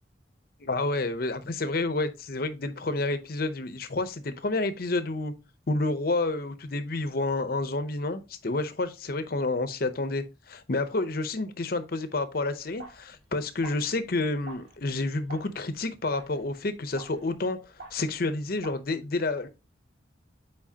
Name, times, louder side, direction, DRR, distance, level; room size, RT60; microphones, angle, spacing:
voice 1, 0.6-5.3 5.7-17.6 17.9-19.5, left 2 dB, 50° left, 0.7 m, -29 dB
sound 1, 12.5-18.8, right 2 dB, 80° right, 2.0 m, -48 dB
7.3 x 4.7 x 2.8 m
head